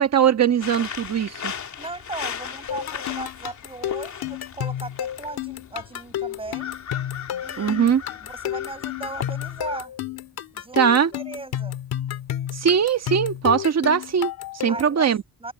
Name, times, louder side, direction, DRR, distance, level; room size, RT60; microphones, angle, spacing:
voice 1, 0.0-1.5 7.6-8.0 10.7-11.1 12.5-15.2, right 8 dB, 45° right, 1.6 m, -20 dB
sound 1, 0.6-9.9, left 8 dB, 50° left, 3.0 m, -37 dB
voice 2, 1.8-6.7 7.4-9.9 10.5-10.8 11.1-11.8 14.7-15.5, right 2 dB, 15° right, 6.0 m, -37 dB
sound 2, 2.7-15.0, left 11 dB, 85° left, 2.1 m, -31 dB
cardioid pair, 140°, 36 cm